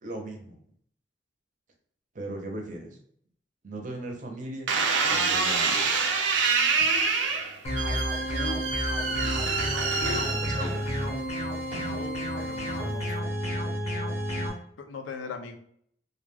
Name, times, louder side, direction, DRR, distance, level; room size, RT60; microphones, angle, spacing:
voice 1, 0.0-0.6 2.1-3.0 3.6-4.7 5.1-6.1 10.3-10.9, right 1 dB, 45° right, 2 dB, 0.6 m, -38 dB
sound 1, 4.7-11.1 11.7-12.2, right 4 dB, 85° right, 0.5 m, -26 dB
sound 2, 7.6-14.5, equal, 35° left, 0.6 m, -31 dB
voice 2, 10.0-10.3 11.9-13.2 14.8-15.6, left 4 dB, 90° left, 5 dB, 0.4 m, -38 dB
2.3 x 2.2 x 3.2 m, 0.64 s
head